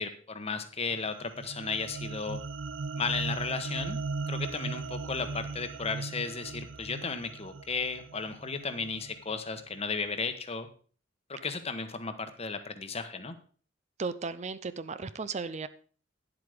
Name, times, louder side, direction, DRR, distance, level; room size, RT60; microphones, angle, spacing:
voice 1, 0.0-2.4 3.0-4.0 4.3-10.7 11.3-13.3, left 4 dB, 35° left, 9 dB, 1.2 m, -34 dB
sound 1, 0.9-9.4, right 3 dB, 90° right, 0.7 m, -38 dB
voice 2, 14.0-15.7, right 4 dB, 35° right, 13 dB, 0.5 m, -35 dB
10.5 x 7.9 x 5.0 m, 0.42 s
head